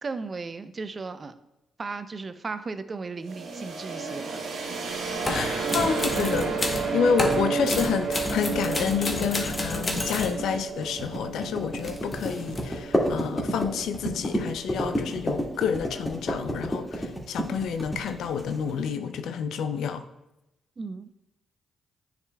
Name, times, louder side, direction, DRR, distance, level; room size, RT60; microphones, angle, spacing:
voice 1, 0.0-1.4 1.8-4.4 20.8-21.1, right 4 dB, 45° right, 12 dB, 0.4 m, -35 dB
sound 1, 3.2-14.9, right 5 dB, 65° right, 1.1 m, -32 dB
sound 2, 5.1-18.9, equal, 20° left, 1.9 m, -31 dB
sound 3, 5.2-6.9 7.2-10.4 11.6-12.7, left 2 dB, 35° left, 1.0 m, -31 dB
voice 2, 5.3-20.0, left 7 dB, 70° left, 9 dB, 0.4 m, -29 dB
9.6 x 4.8 x 2.3 m, 0.91 s
hypercardioid pair, 40°, 0 cm